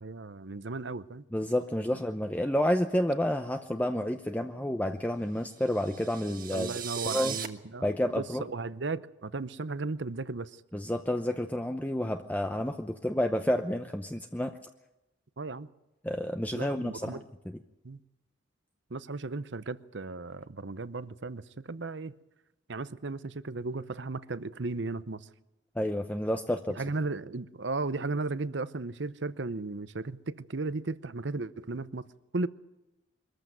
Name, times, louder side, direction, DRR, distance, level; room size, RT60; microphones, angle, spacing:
voice 1, 0.0-1.2 6.5-7.9 8.2-10.6 15.4-15.7 16.5-17.2 17.8-18.0 18.9-22.1 22.7-25.3 26.8-32.1 32.3-32.5, right 3 dB, 65° right, 16 dB, 0.8 m, -35 dB
voice 2, 1.3-6.7 7.0-7.4 7.8-8.5 10.7-14.5 16.0-17.2 25.8-26.8, equal, 10° left, 6 dB, 0.7 m, -30 dB
sound 1, 5.6-7.5, right 9 dB, 45° right, 1.4 m, -38 dB
23.5 x 14.5 x 9.1 m, 0.98 s
head